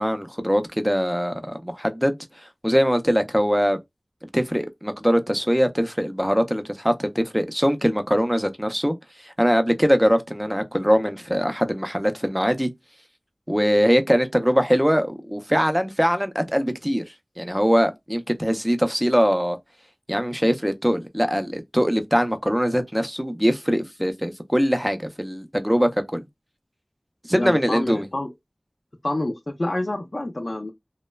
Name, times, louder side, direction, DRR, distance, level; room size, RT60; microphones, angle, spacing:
voice 1, 0.0-3.8 4.3-12.7 13.5-19.6 20.1-26.2 27.3-28.1, equal, 5° right, 0.5 m, -22 dB
voice 2, 27.3-28.3 29.0-30.7, left 1 dB, 55° left, 0.4 m, -27 dB
3.0 x 2.1 x 2.2 m
wide cardioid pair, 40°, 0 cm